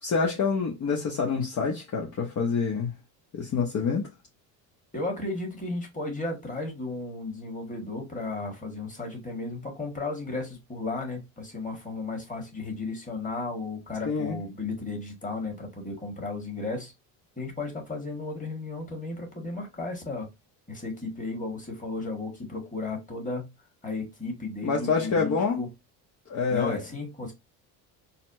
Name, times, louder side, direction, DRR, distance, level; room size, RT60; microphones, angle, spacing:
voice 1, 0.0-2.9 3.3-4.1 14.0-14.4 24.6-25.6 26.3-26.8, left 5 dB, 40° left, 0.8 m, -27 dB
voice 2, 4.9-16.9 17.4-20.3 20.7-23.5 23.8-25.7 26.5-27.3, left 3 dB, 15° left, 1.6 m, -34 dB
4.1 x 2.1 x 2.6 m
supercardioid pair, 80°, 45 cm